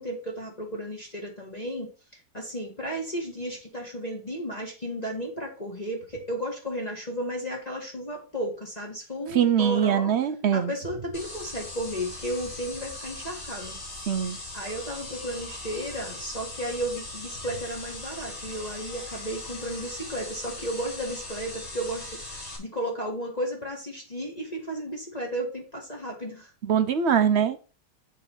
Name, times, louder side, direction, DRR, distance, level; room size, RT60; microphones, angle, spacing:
voice 1, 0.0-10.2 10.5-13.8 14.2-26.5, right 1 dB, 25° left, -1 dB, 1.5 m, -34 dB
voice 2, 9.3-10.7 14.1-14.4 26.7-27.6, right 8 dB, 60° right, 10 dB, 0.7 m, -22 dB
sound 1, 11.1-22.6, left 2 dB, 40° left, 2.5 m, -39 dB
7.5 x 4.0 x 5.5 m, 0.34 s
omnidirectional pair, 1.9 m